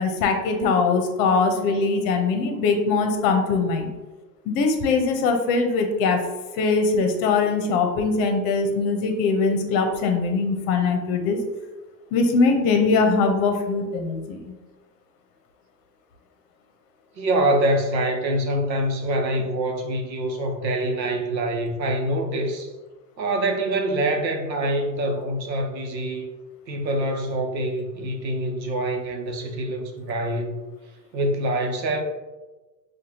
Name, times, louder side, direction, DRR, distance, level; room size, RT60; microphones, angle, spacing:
voice 1, 0.0-3.9 4.5-6.2 6.6-11.4 12.1-14.4, left 4 dB, 45° left, 5 dB, 0.8 m, -21 dB
voice 2, 17.2-22.7 23.2-26.3 26.7-30.5 31.1-32.0, right 1 dB, 85° right, 3 dB, 0.8 m, -25 dB
6.1 x 2.4 x 2.9 m, 1.2 s
hypercardioid pair, 95°, 50 cm